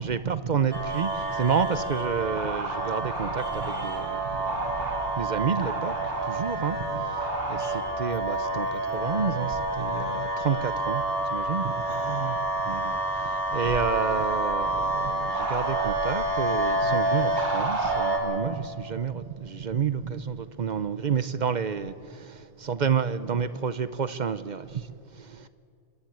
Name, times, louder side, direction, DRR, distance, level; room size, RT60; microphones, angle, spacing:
voice 1, 0.0-25.5, right 6 dB, 50° right, 0.7 m, -30 dB
sound 1, 0.7-18.2, right 2 dB, 70° right, 3.8 m, -28 dB
28.5 x 10.5 x 8.7 m
omnidirectional pair, 1.2 m